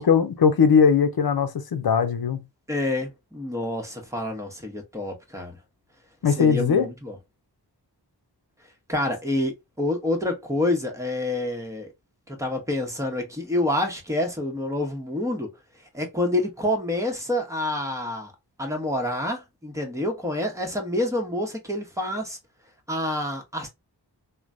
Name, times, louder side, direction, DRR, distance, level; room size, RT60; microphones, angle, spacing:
voice 1, 0.0-2.4 6.2-6.9, left 6 dB, 60° left, 0.6 m, -19 dB
voice 2, 2.7-5.6 6.4-7.1 8.9-11.9 12.3-15.5 15.9-18.3 18.6-22.4 22.9-23.7, left 1 dB, 5° right, 1.0 m, -27 dB
3.1 x 2.2 x 2.5 m
cardioid pair, 40°, 42 cm